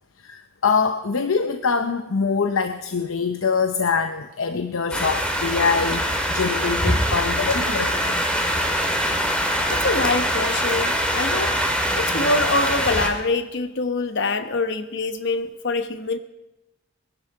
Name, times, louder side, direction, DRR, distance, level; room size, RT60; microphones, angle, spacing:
voice 1, 0.2-8.1, left 5 dB, 90° left, 8 dB, 0.8 m, -24 dB
sound 1, 4.9-13.1, equal, 5° left, 2.0 m, -23 dB
voice 2, 9.7-11.6 11.9-16.2, left 3 dB, 60° left, 9 dB, 1.1 m, -25 dB
21.5 x 11.0 x 4.9 m, 0.99 s
head